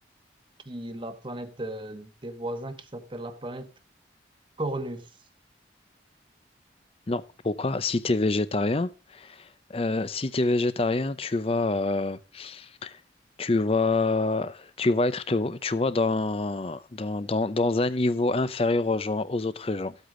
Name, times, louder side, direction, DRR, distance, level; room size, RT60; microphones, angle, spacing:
voice 1, 0.7-3.7 4.6-5.1, right 1 dB, 30° right, 1.1 m, -35 dB
voice 2, 7.1-13.0 13.4-19.9, left 2 dB, 35° left, 0.6 m, -26 dB
14.5 x 8.2 x 3.8 m
head